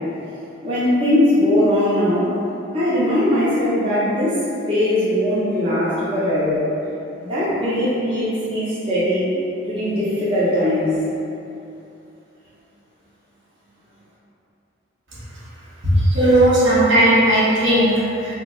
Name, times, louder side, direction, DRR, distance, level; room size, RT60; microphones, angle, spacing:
voice 1, 0.6-2.3 2.7-4.4 4.7-6.6 7.2-9.3 9.6-10.9, left 1 dB, 25° right, -11 dB, 0.6 m, -20 dB
voice 2, 15.8-18.3, right 1 dB, 65° right, -9 dB, 1.0 m, -16 dB
3.8 x 2.0 x 3.6 m, 2.7 s
head